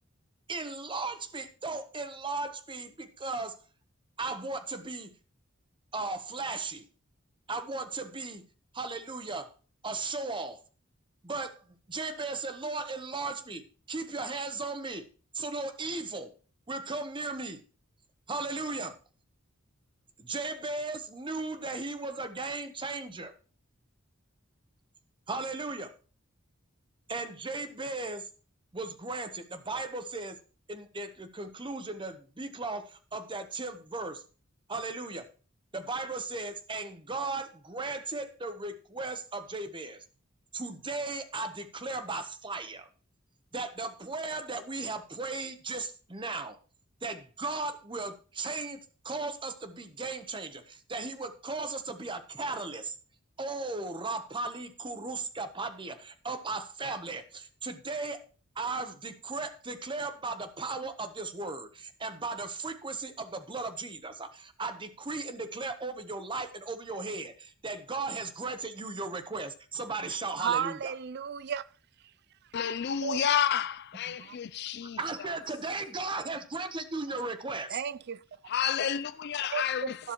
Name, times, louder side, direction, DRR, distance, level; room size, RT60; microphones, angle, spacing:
voice 1, 0.5-3.6 4.2-5.1 5.9-6.8 7.5-8.5 8.7-9.5 9.8-10.6 11.2-11.6 11.9-15.0 15.3-16.3 16.7-17.6 18.3-18.9 20.2-23.3 25.3-25.9 27.1-28.3 28.7-30.4 30.7-34.2 34.7-35.3 35.7-40.0 40.5-42.9 43.5-46.6 47.0-52.9 53.4-58.2 58.6-70.9 75.0-77.8, right 3 dB, 25° right, 0.9 m, -36 dB
voice 2, 70.4-71.6 73.0-73.2 74.1-74.4 77.7-78.2 79.5-80.1, right 8 dB, 55° right, 0.4 m, -33 dB
voice 3, 72.5-75.0 78.5-80.1, left 9 dB, 55° left, 0.4 m, -30 dB
12.0 x 11.0 x 3.0 m
head